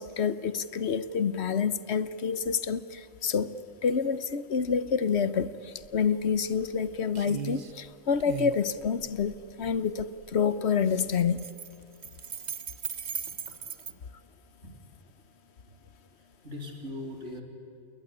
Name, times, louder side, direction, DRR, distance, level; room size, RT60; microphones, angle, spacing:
voice 1, 0.0-3.6 3.8-11.4, left 6 dB, 55° left, 15 dB, 1.1 m, -28 dB
sound 1, 5.8-6.0 6.3-6.8 7.2-7.7 8.2-10.1 10.9-13.9, right 7 dB, 40° right, 0.8 m, -38 dB
voice 2, 16.2-17.4, left 1 dB, 60° right, 2 dB, 4.0 m, -40 dB
28.5 x 21.0 x 9.8 m, 2.5 s
omnidirectional pair, 1.4 m